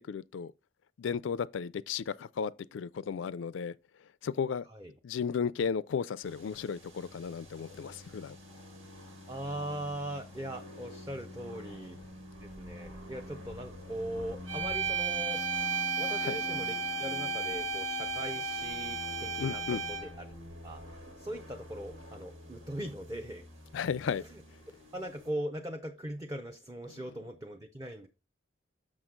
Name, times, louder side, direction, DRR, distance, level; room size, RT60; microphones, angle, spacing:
voice 1, 0.1-0.5 1.0-3.7 4.2-4.6 5.0-8.4 16.2-16.4 19.4-19.8 23.7-24.2, left 6 dB, 70° left, 0.4 m, -34 dB
sound 1, 6.2-25.3, equal, 85° right, 2.2 m, -47 dB
voice 2, 9.3-12.0 12.4-15.4 16.0-19.6 19.9-20.4 20.6-23.5 24.2-24.4 24.9-28.1, right 1 dB, 20° right, 0.6 m, -40 dB
sound 2, 14.5-20.2, right 4 dB, 70° right, 1.7 m, -33 dB
6.5 x 6.2 x 3.7 m
head